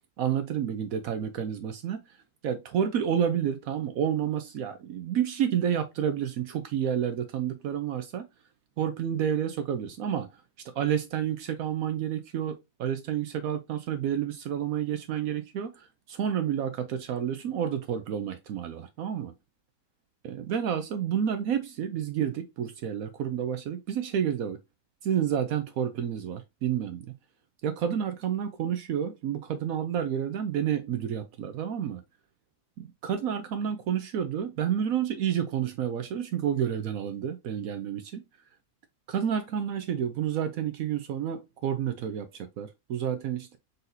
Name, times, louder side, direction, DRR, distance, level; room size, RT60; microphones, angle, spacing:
voice 1, 0.2-2.0 2.4-8.3 8.8-10.3 10.8-19.3 20.2-24.6 25.0-27.1 27.6-32.0 32.8-38.2 39.1-43.6, right 9 dB, 70° right, 0.9 m, -30 dB
4.0 x 4.0 x 2.6 m
omnidirectional pair, 1.7 m